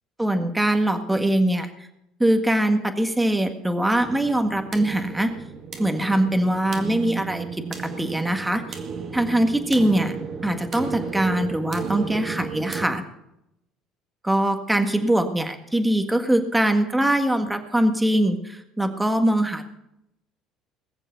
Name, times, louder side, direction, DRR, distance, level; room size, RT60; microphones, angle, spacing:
voice 1, 0.2-1.9 2.2-5.3 5.8-7.6 8.0-8.8 9.1-10.2 10.4-13.0 14.2-19.6, right 1 dB, 10° right, 6 dB, 1.7 m, -22 dB
sound 1, 4.0-12.9, right 5 dB, 45° right, 2.0 m, -34 dB
20.5 x 7.1 x 6.9 m, 0.84 s
supercardioid pair, 95°, 0 cm